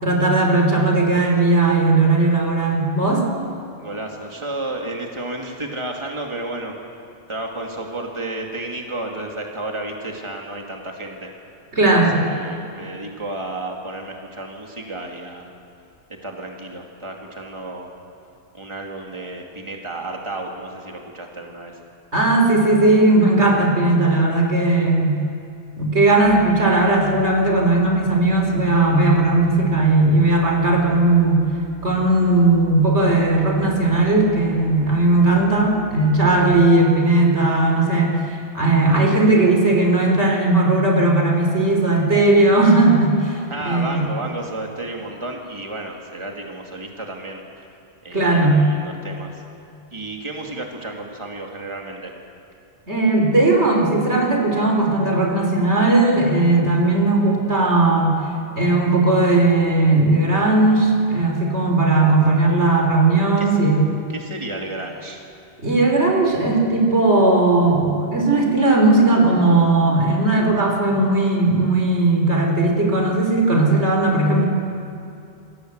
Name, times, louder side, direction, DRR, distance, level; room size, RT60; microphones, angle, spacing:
voice 1, 0.0-3.3 11.7-12.3 22.1-25.2 25.8-31.4 31.8-44.1 48.1-48.7 52.9-58.2 58.6-63.9 65.6-74.4, right 2 dB, 80° right, 1 dB, 4.3 m, -17 dB
voice 2, 3.8-6.7 7.3-11.3 12.1-15.5 16.2-17.9 18.5-21.8 43.5-47.7 48.0-49.4 49.9-52.1 63.4-63.5 64.1-65.2, right 2 dB, 25° right, 1 dB, 2.5 m, -32 dB
sound 1, 26.2-36.5, right 3 dB, 60° right, 3.2 m, -42 dB
28.5 x 22.0 x 8.1 m, 2.6 s
omnidirectional pair, 1.1 m